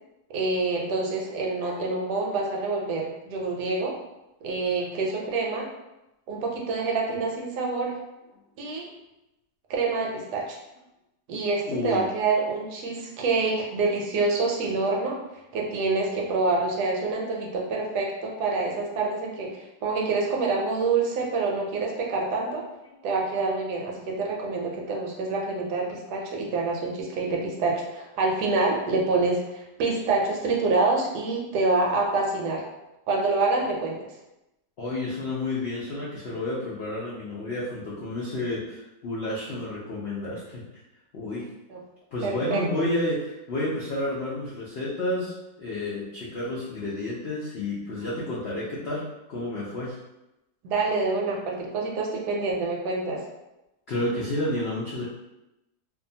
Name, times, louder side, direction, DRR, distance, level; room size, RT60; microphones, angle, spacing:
voice 1, 0.3-4.0 4.4-5.7 6.3-8.0 8.6-8.9 9.7-10.6 11.3-15.2 15.5-22.6 23.0-32.6 33.1-34.0 41.7-41.8 42.2-42.6 50.6-53.2, right 3 dB, 75° right, -1 dB, 1.1 m, -26 dB
voice 2, 11.7-12.1 34.8-40.6 41.1-41.5 42.1-49.0 49.3-50.0 53.9-55.1, left 1 dB, 85° left, -7 dB, 0.5 m, -30 dB
2.7 x 2.2 x 2.6 m, 0.94 s
omnidirectional pair, 1.8 m